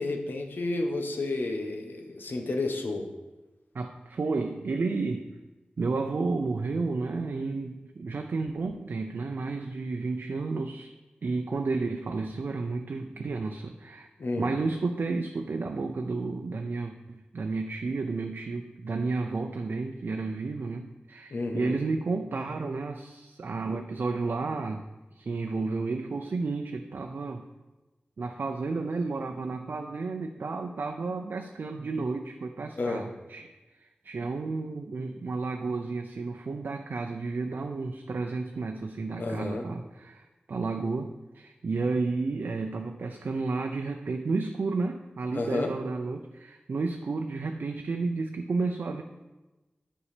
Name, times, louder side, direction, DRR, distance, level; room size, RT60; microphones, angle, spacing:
voice 1, 0.0-3.1 14.2-14.5 21.3-21.8 32.8-33.0 39.2-39.7 45.3-45.7, left 2 dB, 80° left, 3 dB, 1.2 m, -31 dB
voice 2, 3.7-5.3 5.8-10.9 11.2-14.1 14.4-24.8 25.1-27.4 28.2-33.5 33.8-49.0, right 3 dB, 75° right, 4 dB, 0.6 m, -32 dB
9.9 x 5.5 x 5.0 m, 1.1 s
wide cardioid pair, 70°, 3 cm